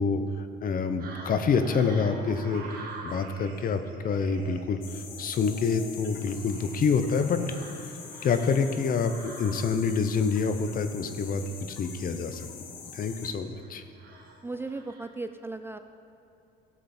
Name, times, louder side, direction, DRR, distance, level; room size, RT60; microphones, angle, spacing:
voice 1, 0.0-2.8 3.0-7.4 8.2-11.4 11.7-12.5 12.9-13.8, left 5 dB, 45° left, 9 dB, 0.8 m, -27 dB
sound 1, 1.0-15.2, right 3 dB, 50° right, 2.4 m, -47 dB
sound 2, 4.8-13.3, left 6 dB, 80° left, 1.2 m, -44 dB
voice 2, 13.0-13.4 14.4-15.8, right 3 dB, 10° right, 8 dB, 0.3 m, -37 dB
14.5 x 7.7 x 4.3 m, 2.8 s
cardioid pair, 110°, 20 cm